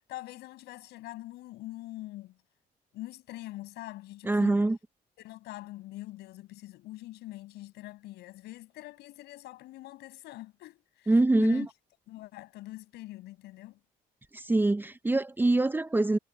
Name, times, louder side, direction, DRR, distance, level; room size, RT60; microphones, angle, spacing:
voice 1, 0.1-2.4 2.9-4.7 5.2-11.7 12.1-13.8, left 17 dB, 85° left, 6.2 m, -44 dB
voice 2, 4.2-4.8 11.1-11.7 14.3-16.2, right 2 dB, 10° right, 0.7 m, -24 dB
cardioid pair, 110°, 17 cm